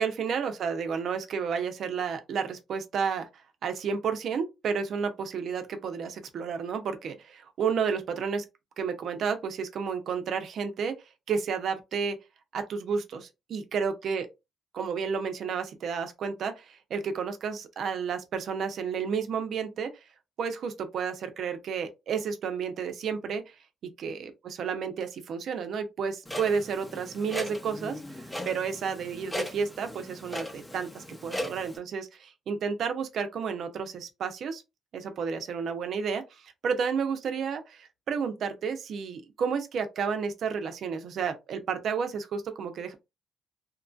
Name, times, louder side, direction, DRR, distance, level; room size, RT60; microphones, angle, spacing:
voice 1, 0.0-3.3 3.6-8.4 8.8-11.0 11.3-12.2 12.5-14.3 14.7-19.9 20.4-23.5 23.8-34.6 34.9-42.9, right 6 dB, 65° right, 0.6 m, -31 dB
Clock, 26.2-31.8, left 1 dB, 10° left, 0.8 m, -38 dB
2.9 x 2.5 x 2.3 m
cardioid pair, 90°, 0 cm